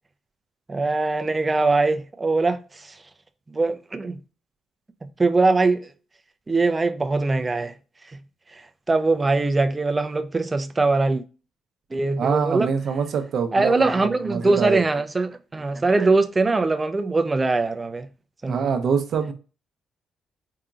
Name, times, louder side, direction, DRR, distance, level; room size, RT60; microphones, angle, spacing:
voice 1, 0.7-3.0 3.5-4.2 5.2-5.9 6.5-7.7 8.1-8.2 8.5-8.6 8.9-11.2 11.9-12.7 13.5-18.1 18.4-18.6, right 3 dB, 25° right, 0.5 m, -22 dB
voice 2, 12.2-14.8 18.4-19.3, right 6 dB, 65° right, 0.7 m, -25 dB
4.9 x 2.8 x 2.4 m
cardioid pair, 90°, 0 cm